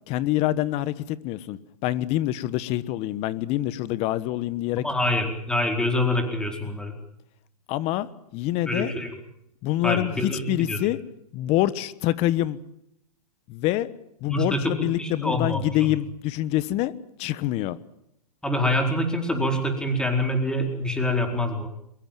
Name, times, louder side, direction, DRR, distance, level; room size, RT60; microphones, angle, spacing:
voice 1, 0.1-4.8 7.7-8.9 9.6-11.0 11.3-12.6 13.5-13.9 14.2-16.9 17.2-17.8, left 15 dB, 30° left, 18 dB, 1.2 m, -26 dB
voice 2, 4.8-6.9 8.6-9.1 9.8-10.8 14.3-15.6 18.4-21.7, left 1 dB, 5° left, 4 dB, 4.5 m, -25 dB
23.0 x 22.0 x 7.6 m, 0.76 s
hypercardioid pair, 130°, 20 cm